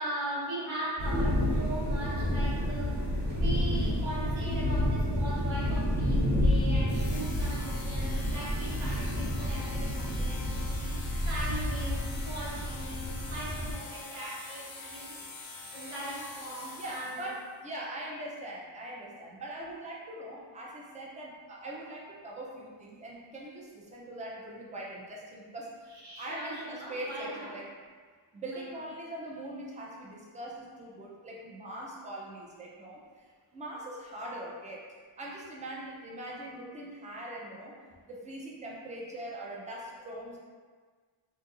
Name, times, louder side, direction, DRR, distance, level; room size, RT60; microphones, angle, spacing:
voice 1, 0.0-10.9 11.2-15.1 15.7-17.3 25.9-27.6 28.5-28.7, right 1 dB, 70° right, -6 dB, 1.0 m, -39 dB
sound 1, 1.0-13.7, left 1 dB, 45° right, 1.2 m, -30 dB
sound 2, 6.9-17.4, left 3 dB, 65° left, 0.7 m, -45 dB
voice 2, 16.8-27.7 28.3-33.3 33.5-34.9 35.2-37.7 38.1-40.4, right 1 dB, 15° right, -3 dB, 0.4 m, -42 dB
2.7 x 2.6 x 2.4 m, 1.5 s
wide cardioid pair, 120°, 49 cm